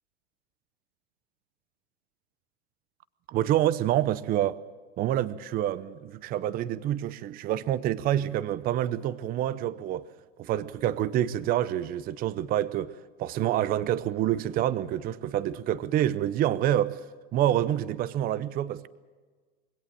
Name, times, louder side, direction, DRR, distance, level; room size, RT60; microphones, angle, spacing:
voice 1, 3.3-4.6 5.0-10.1 10.4-12.9 13.2-17.0 17.3-18.9, right 12 dB, 30° right, 0.7 m, -27 dB
23.5 x 17.5 x 7.6 m
hypercardioid pair, 125°, 32 cm